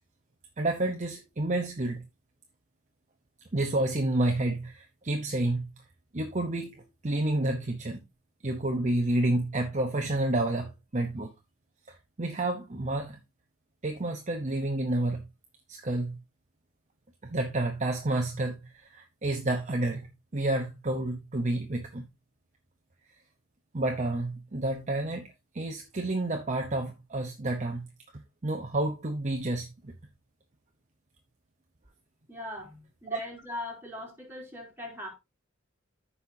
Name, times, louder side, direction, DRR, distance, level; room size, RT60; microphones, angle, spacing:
voice 1, 0.6-2.0 3.5-5.7 6.1-8.0 8.4-11.3 11.9-13.2 13.8-15.3 15.7-16.2 17.2-22.1 23.7-27.9 28.4-29.9 33.1-33.3, right 2 dB, 35° right, 0.9 m, -30 dB
voice 2, 32.3-35.2, left 2 dB, 10° right, 3.9 m, -40 dB
14.0 x 5.7 x 2.7 m
head